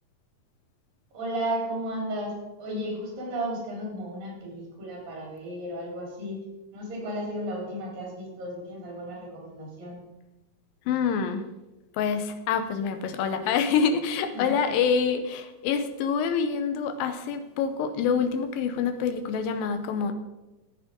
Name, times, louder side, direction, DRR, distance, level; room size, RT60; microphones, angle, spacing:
voice 1, 1.1-6.4 6.7-10.0 14.3-14.6, right 1 dB, 75° right, -1 dB, 5.1 m, -34 dB
voice 2, 10.9-11.4 11.9-20.1, left 6 dB, 90° left, 8 dB, 2.6 m, -26 dB
14.0 x 7.7 x 5.1 m, 1.0 s
omnidirectional pair, 4.0 m